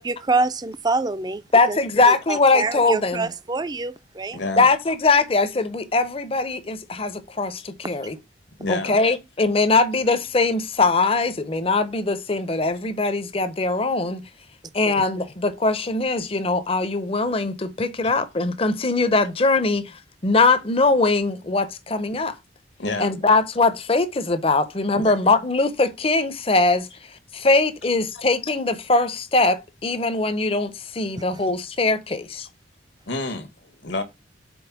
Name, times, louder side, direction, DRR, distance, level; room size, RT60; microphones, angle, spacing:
voice 1, 0.0-1.4 1.7-1.8 2.1-4.4 14.9-15.0, right 3 dB, 20° right, 0.4 m, -26 dB
voice 2, 1.5-3.3 4.6-8.2 8.7-14.2 14.7-22.4 23.0-32.5, left 3 dB, 30° left, 0.7 m, -21 dB
voice 3, 4.3-4.7 8.6-9.0 18.0-18.1 22.8-23.1 24.9-25.1 33.1-34.0, left 2 dB, 75° left, 1.4 m, -29 dB
5.4 x 4.2 x 5.8 m
head